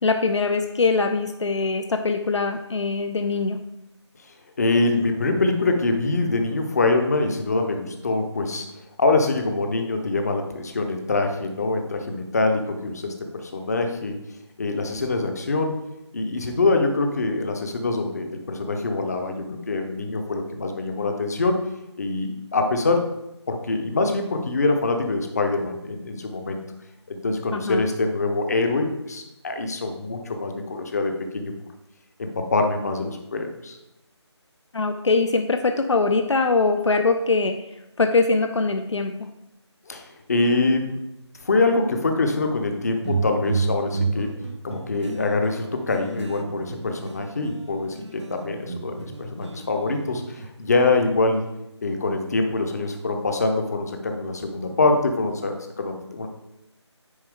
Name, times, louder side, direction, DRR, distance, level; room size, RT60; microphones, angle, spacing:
voice 1, 0.0-3.6 27.5-27.8 34.7-37.6 38.0-39.3, left 3 dB, 80° left, 7 dB, 0.6 m, -22 dB
voice 2, 4.6-8.7 9.0-14.2 14.6-15.7 16.1-21.6 22.0-23.1 23.5-26.6 27.1-31.5 32.2-33.8 39.9-40.9 41.4-44.3 44.6-51.5 51.8-56.3, left 3 dB, 35° left, 4 dB, 0.8 m, -24 dB
sound 1, 43.0-47.6 47.9-50.5, right 4 dB, 75° right, 0.6 m, -31 dB
9.6 x 4.3 x 3.6 m, 0.89 s
figure-of-eight pair, 170°, 15 cm